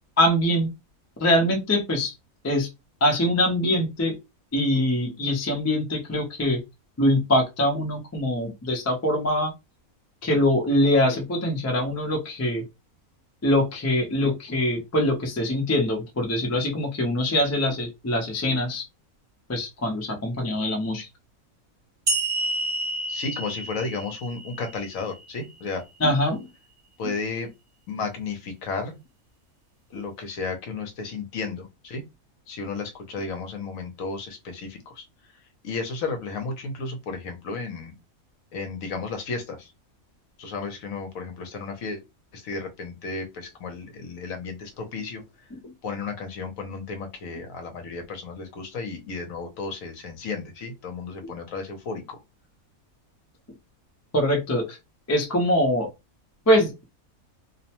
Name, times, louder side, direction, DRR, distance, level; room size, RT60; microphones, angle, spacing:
voice 1, 0.2-0.7 1.2-2.1 2.4-2.7 3.0-4.2 4.5-6.6 7.0-9.5 10.2-12.6 13.4-18.8 19.5-21.1 26.0-26.4 45.6-45.7 54.1-54.8 55.1-55.9 56.5-56.8, left 1 dB, 25° left, 0.3 m, -23 dB
sound 1, 22.1-25.4, right 2 dB, 50° right, 0.9 m, -29 dB
voice 2, 23.1-25.8 27.0-27.5 27.9-29.0 29.9-32.0 32.5-35.0 35.6-37.9 38.5-39.7 40.4-42.0 42.3-45.2 45.8-52.2, left 4 dB, 70° left, 1.0 m, -33 dB
2.6 x 2.1 x 2.8 m
omnidirectional pair, 1.5 m